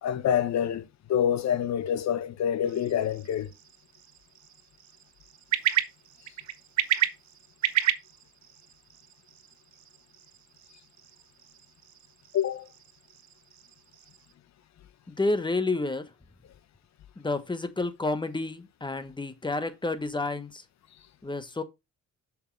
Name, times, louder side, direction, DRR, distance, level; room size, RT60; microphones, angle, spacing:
voice 1, 0.0-3.5 12.3-12.7, left 9 dB, 65° left, 1.0 m, -27 dB
sound 1, 2.7-14.3, right 11 dB, 70° right, 1.0 m, -34 dB
voice 2, 15.1-16.1 17.2-20.6 21.2-21.6, left 2 dB, 15° left, 1.3 m, -30 dB
6.8 x 6.3 x 3.3 m
cardioid pair, 90°, 30 cm